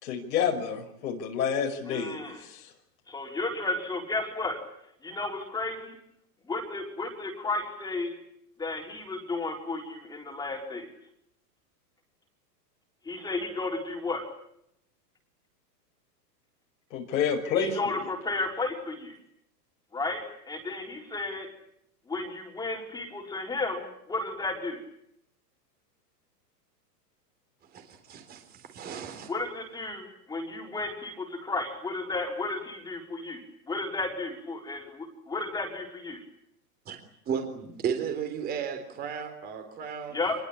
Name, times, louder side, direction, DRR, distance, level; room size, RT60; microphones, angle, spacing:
voice 1, 0.0-2.7 16.9-17.9, left 7 dB, 80° left, 0 dB, 5.9 m, -29 dB
voice 2, 1.9-2.4 3.1-4.6 5.0-5.9 6.5-8.1 8.6-10.9 13.1-14.2 17.6-19.1 19.9-21.5 22.1-24.8 29.3-33.4 33.7-36.2 40.1-40.3, left 3 dB, 10° left, 2 dB, 4.3 m, -33 dB
voice 3, 27.7-29.3 36.9-37.0 37.3-40.2, right 7 dB, 20° right, 5 dB, 3.7 m, -34 dB
27.0 x 21.5 x 8.8 m, 0.75 s
supercardioid pair, 165°, 49 cm